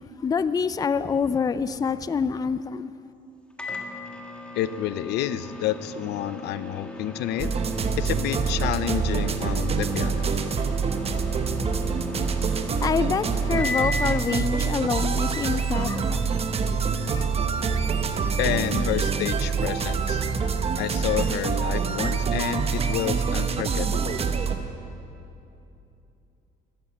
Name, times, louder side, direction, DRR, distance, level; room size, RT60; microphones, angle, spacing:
voice 1, 0.2-2.9 12.8-16.3 17.1-17.3, left 6 dB, 20° left, 0.4 m, -26 dB
Microwave oven, 3.6-14.3, left 2 dB, 5° left, 1.6 m, -36 dB
voice 2, 4.5-7.6 8.0-10.4 18.4-20.2 20.8-24.2, left 12 dB, 80° left, 0.7 m, -29 dB
Gooey Song, 7.4-24.6, right 5 dB, 35° right, 1.1 m, -26 dB
13.5 x 12.5 x 8.5 m
cardioid pair, 110°, 17 cm